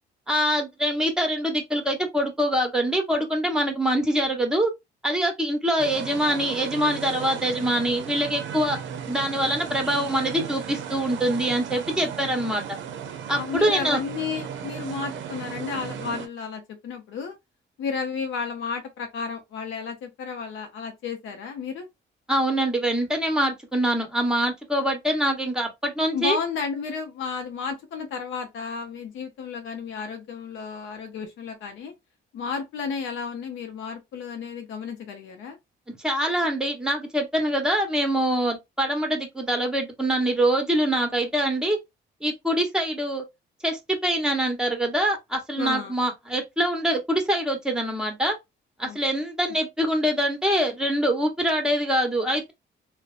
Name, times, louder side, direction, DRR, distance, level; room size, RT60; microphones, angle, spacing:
voice 1, 0.3-4.7 5.0-8.8 9.1-12.8 13.3-14.0 22.3-26.4 35.9-41.8 42.2-43.2 43.6-48.4 48.8-52.5, right 1 dB, 5° right, 0.9 m, -24 dB
sound 1, 5.8-16.3, right 8 dB, 70° right, 0.5 m, -36 dB
voice 2, 13.3-17.4 17.8-21.9 26.1-31.9 32.3-35.6 45.6-45.9 48.8-49.0, left 5 dB, 75° left, 0.6 m, -32 dB
2.6 x 2.1 x 2.4 m
cardioid pair, 90°, 20 cm